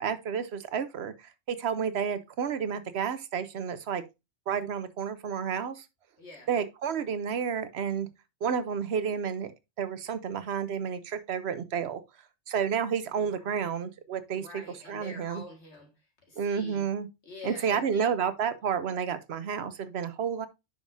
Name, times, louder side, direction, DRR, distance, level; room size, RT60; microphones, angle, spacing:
voice 1, 0.0-4.0 4.5-5.8 6.5-8.1 8.4-9.5 9.8-12.0 12.5-14.5 14.9-15.4 16.4-17.1 17.4-20.5, right 7 dB, 65° right, 1.0 m, -30 dB
voice 2, 6.2-6.5 13.2-13.7 14.4-15.9 16.3-16.9 17.2-18.1, left 2 dB, 65° left, 2.0 m, -46 dB
9.8 x 5.3 x 2.6 m
omnidirectional pair, 1.2 m